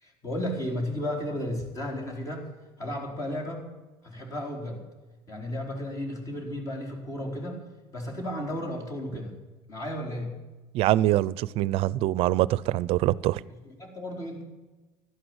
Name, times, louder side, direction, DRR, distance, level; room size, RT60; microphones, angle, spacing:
voice 1, 0.0-2.5 2.8-3.7 4.0-4.8 5.3-7.6 7.9-9.3 9.7-10.4 13.6-14.4, left 1 dB, 30° left, 1 dB, 4.4 m, -33 dB
voice 2, 10.7-13.4, right 15 dB, 60° right, 21 dB, 0.5 m, -24 dB
15.0 x 11.5 x 8.1 m, 1.2 s
cardioid pair, 135°, 11 cm